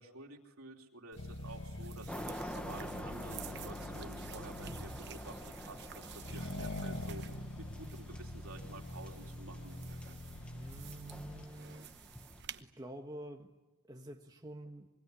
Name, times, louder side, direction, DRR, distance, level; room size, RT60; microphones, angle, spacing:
voice 1, 0.0-7.2 7.6-9.8, right 2 dB, 80° right, 3.3 m, -51 dB
sound 1, 1.1-12.6, right 8 dB, 50° right, 1.0 m, -53 dB
Accelerating revving vroom, 1.2-11.5, left 1 dB, 60° left, 1.7 m, -45 dB
sound 2, 2.1-12.4, equal, 5° left, 1.0 m, -48 dB
voice 2, 10.5-11.9 12.6-13.5 13.8-14.9, right 1 dB, 15° right, 1.4 m, -48 dB
26.0 x 22.5 x 9.7 m
head